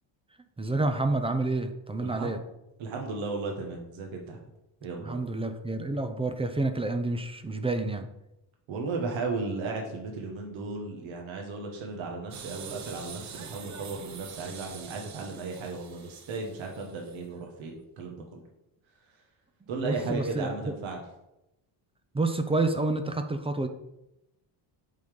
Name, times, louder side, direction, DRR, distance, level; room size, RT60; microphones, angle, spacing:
voice 1, 0.6-2.4 5.0-8.1 19.8-20.8 22.1-23.7, right 2 dB, 10° right, 8 dB, 0.4 m, -29 dB
voice 2, 2.0-2.3 2.8-4.5 4.8-5.2 8.7-18.4 19.1-19.2 19.7-21.0, right 3 dB, 65° right, 1 dB, 1.6 m, -35 dB
sound 1, 12.3-17.4, right 7 dB, 35° right, 0.7 m, -45 dB
8.3 x 4.0 x 5.1 m, 0.89 s
cardioid pair, 130°, 50 cm